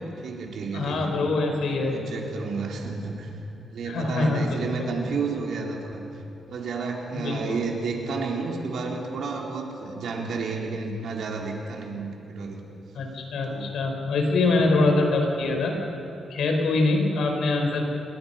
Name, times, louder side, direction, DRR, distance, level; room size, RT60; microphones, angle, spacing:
voice 1, 0.2-1.1 1.8-3.3 3.7-6.0 6.5-12.6 13.4-13.7 14.5-14.7, right 4 dB, 70° right, 0 dB, 3.7 m, -31 dB
voice 2, 0.7-2.0 3.9-4.9 7.1-7.6 12.9-15.8 16.3-17.9, left 2 dB, 80° left, 3 dB, 4.6 m, -24 dB
28.5 x 22.0 x 5.7 m, 2.9 s
cardioid pair, 125°, 0 cm